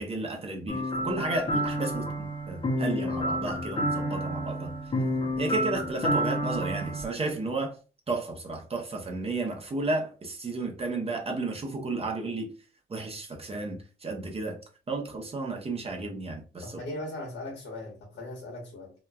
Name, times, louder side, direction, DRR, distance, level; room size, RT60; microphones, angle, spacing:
voice 1, 0.0-4.7 5.4-7.8 8.1-12.5 12.9-14.6 14.9-16.8, right 2 dB, 30° right, 0.6 m, -33 dB
sound 1, 0.7-7.0, equal, 25° left, 0.6 m, -29 dB
voice 2, 16.6-18.9, left 1 dB, 80° left, 1.2 m, -38 dB
2.9 x 2.2 x 2.2 m
cardioid pair, 115°, 21 cm